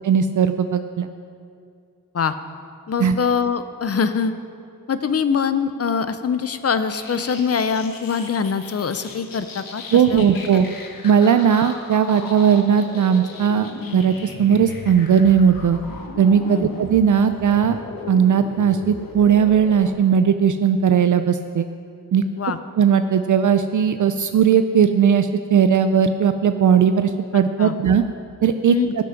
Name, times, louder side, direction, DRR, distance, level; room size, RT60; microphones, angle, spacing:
voice 1, 0.0-1.1 3.0-3.2 9.9-10.7 11.0-15.8 16.2-17.8 18.1-21.7 22.1-22.2 22.8-28.0 28.4-28.7, right 7 dB, 60° right, 9 dB, 0.5 m, -17 dB
voice 2, 2.9-4.3 4.9-10.2 10.5-10.6 16.5-16.7 22.4-22.6 27.6-27.7 28.7-28.9, left 6 dB, 45° left, 11 dB, 0.7 m, -23 dB
sound 1, 6.9-19.9, left 4 dB, 75° left, 1.4 m, -37 dB
18.0 x 6.1 x 5.9 m, 2.5 s
wide cardioid pair, 120°, 35 cm